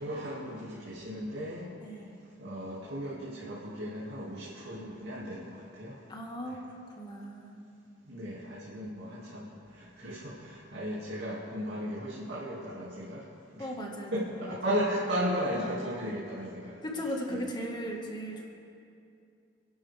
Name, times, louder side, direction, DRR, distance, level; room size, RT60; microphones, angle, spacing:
voice 1, 0.0-1.7 2.4-6.0 6.5-6.6 8.1-13.3 13.5-13.7 14.1-16.8 17.3-17.4, equal, 60° right, -7 dB, 2.6 m, -35 dB
voice 2, 1.8-2.2 6.1-7.6 10.0-10.2 13.6-14.6 16.8-18.5, equal, 25° left, 0 dB, 1.8 m, -38 dB
28.0 x 11.5 x 3.6 m, 2.5 s
head